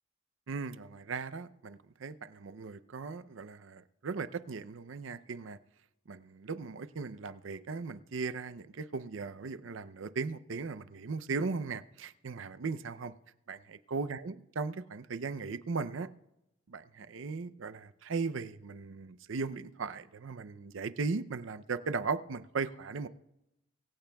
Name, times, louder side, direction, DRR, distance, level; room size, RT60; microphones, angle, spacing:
voice 1, 0.5-5.6 6.1-13.1 13.5-16.1 16.7-23.1, right 4 dB, 75° right, 13 dB, 0.5 m, -37 dB
23.0 x 15.5 x 2.3 m, 0.89 s
head